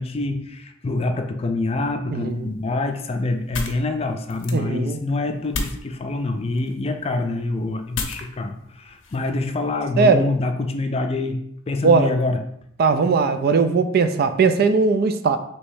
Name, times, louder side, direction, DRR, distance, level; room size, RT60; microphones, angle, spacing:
voice 1, 0.0-11.4 11.7-12.4, left 2 dB, 30° left, 6 dB, 0.4 m, -25 dB
voice 2, 2.1-2.5 4.5-5.0 10.0-10.3 11.8-12.1 12.8-15.4, right 4 dB, 50° right, 9 dB, 0.3 m, -19 dB
sound 1, 2.3-9.8, left 3 dB, 70° left, 0.6 m, -35 dB
3.2 x 3.0 x 4.7 m, 0.72 s
head